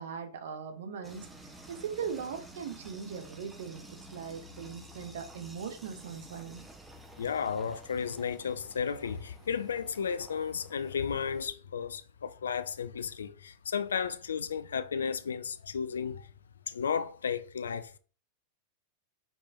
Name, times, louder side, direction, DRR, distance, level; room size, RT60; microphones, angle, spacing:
voice 1, 0.0-6.7, right 6 dB, 60° right, 0.8 m, -40 dB
sound 1, 1.0-11.4, right 1 dB, 10° right, 0.7 m, -51 dB
voice 2, 7.2-16.3 16.7-18.0, left 6 dB, 70° left, 0.3 m, -33 dB
5.3 x 3.2 x 2.5 m
figure-of-eight pair, 90°, 0 cm